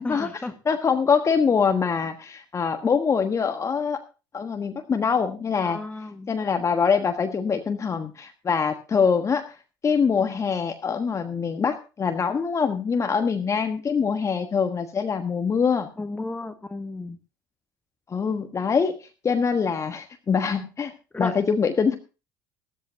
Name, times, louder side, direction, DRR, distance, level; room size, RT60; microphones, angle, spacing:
voice 1, 0.0-0.5 5.6-6.3 16.0-17.2 21.1-21.4, left 2 dB, 10° left, 7 dB, 1.7 m, -33 dB
voice 2, 0.6-4.0 4.3-5.8 6.3-9.4 9.8-15.9 18.1-20.9 21.2-21.9, left 6 dB, 30° left, 6 dB, 1.3 m, -24 dB
15.5 x 14.0 x 2.8 m, 0.32 s
figure-of-eight pair, 60°, 11 cm